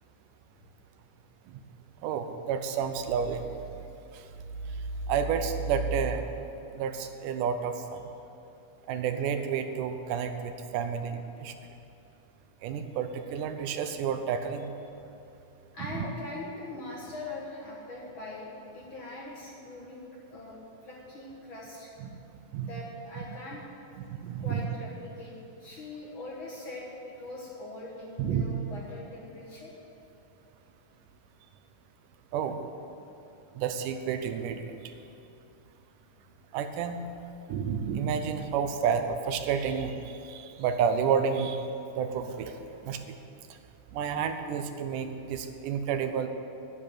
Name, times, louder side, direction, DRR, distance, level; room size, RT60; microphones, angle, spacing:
voice 1, 2.0-3.4 4.1-4.2 5.1-6.3 6.7-8.0 8.9-11.5 12.6-14.7 15.9-16.1 22.0-22.1 22.5-22.7 24.0-24.6 28.2-28.5 32.3-32.6 33.6-34.8 36.5-37.0 37.5-41.6 41.9-42.6 42.8-43.0 43.9-46.3, right 7 dB, 80° right, 8 dB, 2.2 m, -30 dB
voice 2, 15.7-20.0 20.3-21.9 22.6-23.6 24.4-25.3 25.6-29.7, left 2 dB, 50° left, -4 dB, 1.7 m, -42 dB
9.9 x 7.4 x 9.2 m, 2.7 s
omnidirectional pair, 3.7 m